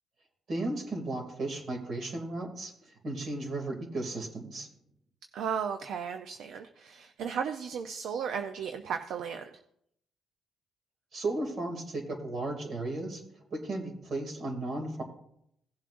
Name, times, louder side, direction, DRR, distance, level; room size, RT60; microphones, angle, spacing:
voice 1, 0.5-2.7 3.0-4.7 11.1-13.2 13.5-15.0, right 2 dB, 55° right, 3 dB, 2.6 m, -35 dB
voice 2, 5.3-9.5, right 7 dB, 75° right, 7 dB, 0.6 m, -35 dB
17.0 x 7.3 x 2.6 m, 0.74 s
cardioid pair, 90°, 0 cm